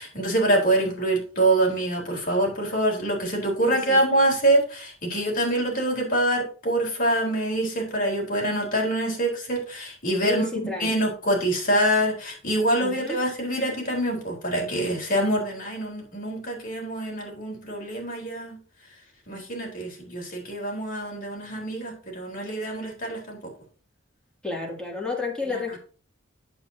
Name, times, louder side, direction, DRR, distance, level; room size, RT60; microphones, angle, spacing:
voice 1, 0.0-18.6 19.3-23.5 25.5-25.8, right 1 dB, 45° left, 3.9 m, -25 dB
voice 2, 3.6-4.0 10.2-11.1 12.8-13.2 24.4-25.8, left 4 dB, 5° left, 2.6 m, -31 dB
9.4 x 8.1 x 2.8 m
head